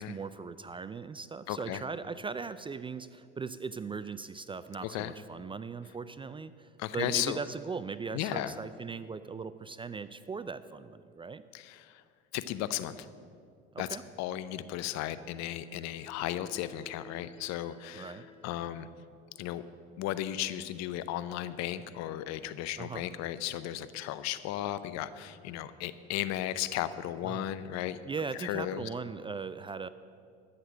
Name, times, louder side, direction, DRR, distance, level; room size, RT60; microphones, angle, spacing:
voice 1, 0.0-11.4 13.7-14.0 18.0-18.3 22.8-23.1 27.2-27.5 28.1-29.9, right 5 dB, 20° right, 14 dB, 0.3 m, -39 dB
voice 2, 1.5-1.8 4.8-5.1 6.8-7.4 8.1-8.5 11.5-12.0 12.3-13.1 13.8-13.9 14.2-18.9 19.4-19.6 20.0-28.0 28.4-28.9, left 13 dB, 60° left, 14 dB, 0.7 m, -35 dB
sound 1, 15.1-18.6, left 2 dB, 20° left, 1.8 m, -56 dB
12.5 x 6.6 x 7.5 m, 2.3 s
hypercardioid pair, 70°, 30 cm